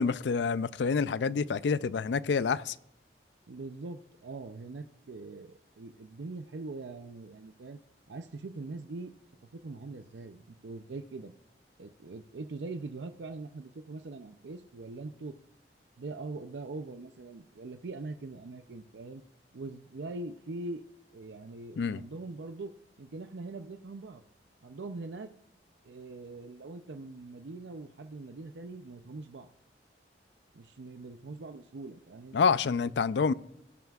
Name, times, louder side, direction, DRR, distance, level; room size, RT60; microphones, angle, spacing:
voice 1, 0.0-2.8 21.8-22.0 32.3-33.3, left 5 dB, 80° left, 0.4 m, -27 dB
voice 2, 3.5-7.8 8.1-9.1 9.5-11.3 11.8-15.4 16.0-19.2 19.5-20.8 21.1-22.7 23.0-24.2 24.6-25.3 25.8-29.5 30.5-32.4, right 3 dB, 85° right, 0.5 m, -42 dB
18.0 x 9.2 x 2.4 m
head